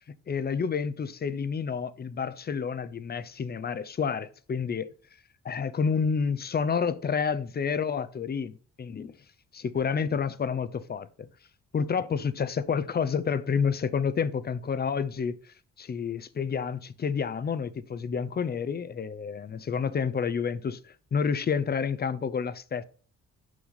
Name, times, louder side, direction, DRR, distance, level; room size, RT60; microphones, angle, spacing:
voice 1, 0.3-4.9 5.4-9.1 9.5-11.3 11.7-15.4 15.8-22.8, left 6 dB, 35° left, 0.6 m, -29 dB
6.1 x 5.7 x 4.1 m
cardioid pair, 90°, 30 cm